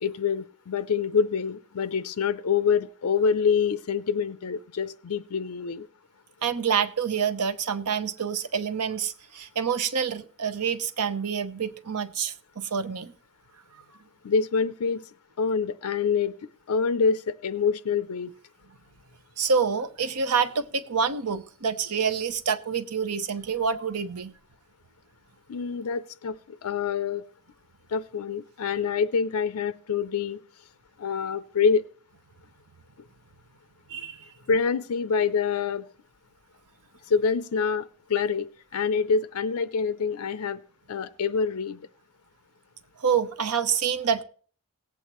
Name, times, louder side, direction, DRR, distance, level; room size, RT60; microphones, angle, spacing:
voice 1, 0.0-5.9 14.2-15.1 15.4-16.3 16.7-18.3 25.5-27.2 27.9-30.4 31.0-31.8 34.5-35.9 37.1-40.6 40.9-41.9, left 6 dB, 75° left, 0.5 m, -26 dB
voice 2, 6.4-13.1 19.4-24.3 33.9-34.3 43.0-44.2, right 6 dB, 90° right, 0.8 m, -27 dB
18.5 x 8.3 x 3.0 m
head